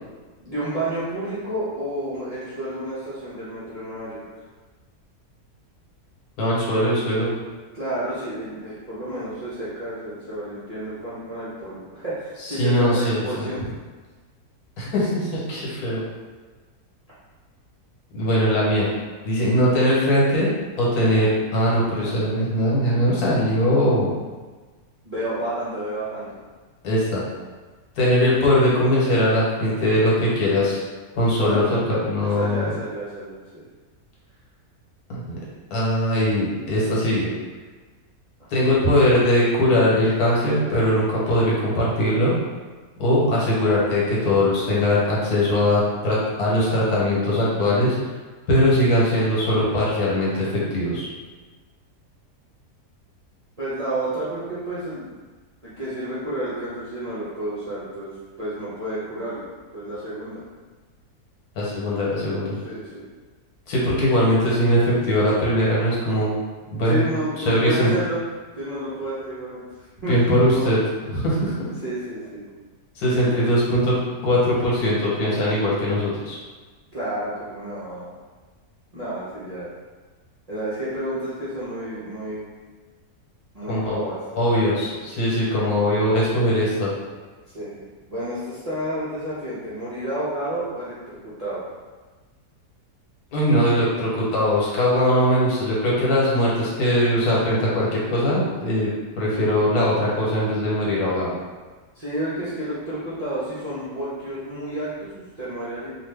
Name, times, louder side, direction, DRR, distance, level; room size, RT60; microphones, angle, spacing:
voice 1, 0.4-4.3 7.7-13.7 25.0-26.3 31.3-33.6 53.6-55.1 55.6-59.4 59.7-60.4 62.6-63.1 66.8-68.2 68.5-70.7 71.8-72.4 73.1-73.6 76.9-78.1 78.9-79.7 80.5-82.5 83.5-84.9 87.5-87.8 88.1-91.6 101.9-105.9, right 1 dB, 45° right, -11 dB, 0.5 m, -30 dB
voice 2, 6.4-7.3 12.4-13.5 14.8-16.0 18.1-18.9 19.2-20.5 20.8-24.1 26.8-27.2 28.0-30.8 31.2-32.7 35.1-35.4 35.7-37.3 38.5-42.4 43.0-48.0 48.5-51.1 61.6-62.6 63.7-66.4 66.7-67.0 67.4-67.9 70.1-70.8 71.1-71.5 73.0-74.0 74.2-76.4 83.7-84.0 84.3-86.9 93.3-98.9 99.1-101.3, equal, 80° left, -6 dB, 1.4 m, -20 dB
2.7 x 2.5 x 3.3 m, 1.4 s
omnidirectional pair, 1.6 m